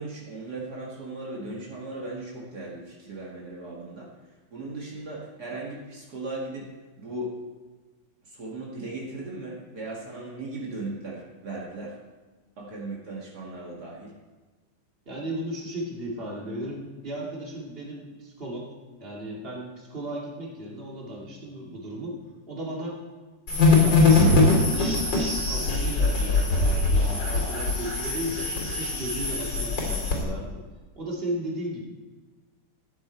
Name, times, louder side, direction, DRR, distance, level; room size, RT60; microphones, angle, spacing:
voice 1, 0.0-4.1 4.5-6.7 7.0-7.4 8.3-11.9 12.6-14.1, right 2 dB, 60° right, -4 dB, 2.5 m, -37 dB
voice 2, 15.1-18.7 19.0-22.2 22.5-23.0 23.5-28.5 28.7-30.6 30.9-31.8, right 1 dB, 30° right, -3 dB, 2.6 m, -35 dB
sound 1, 23.5-30.2, left 3 dB, 80° left, 3.2 m, -22 dB
14.0 x 9.4 x 4.5 m, 1.3 s
omnidirectional pair, 1.9 m